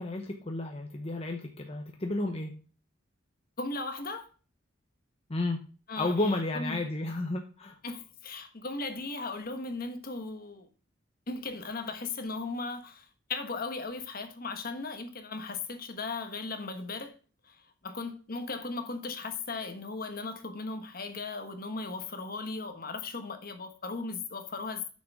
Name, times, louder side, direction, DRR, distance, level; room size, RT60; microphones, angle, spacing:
voice 1, 0.0-2.5 5.3-5.6 6.0-7.8, left 2 dB, 30° left, 0.9 m, -32 dB
voice 2, 3.6-4.3 5.9-6.8 7.8-10.7 11.3-17.2 17.4-24.9, left 3 dB, 50° left, 1.3 m, -37 dB
7.3 x 6.4 x 6.0 m
head